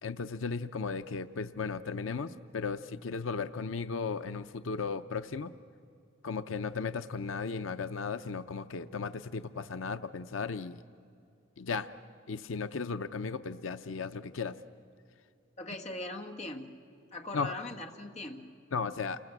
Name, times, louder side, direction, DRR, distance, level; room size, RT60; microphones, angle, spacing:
voice 1, 0.0-5.5 6.2-10.8 11.6-11.9 12.3-14.5 17.3-17.5 18.7-19.2, left 5 dB, 90° left, 11 dB, 0.6 m, -35 dB
voice 2, 15.6-16.8 17.1-18.6, left 2 dB, 35° left, 3 dB, 1.6 m, -41 dB
28.5 x 21.0 x 7.9 m, 2.5 s
head